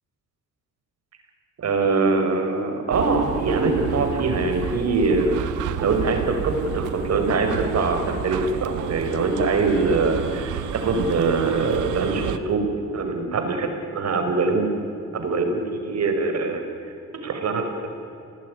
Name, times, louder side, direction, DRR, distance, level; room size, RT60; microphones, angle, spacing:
voice 1, 1.6-5.5 5.8-12.6 12.9-14.8 15.1-16.6 17.2-17.7, right 3 dB, 60° right, 5 dB, 5.7 m, -23 dB
sound 1, 2.9-12.4, right 9 dB, 90° right, 1.5 m, -31 dB
29.5 x 19.5 x 9.9 m, 2.7 s
cardioid pair, 90°, 30 cm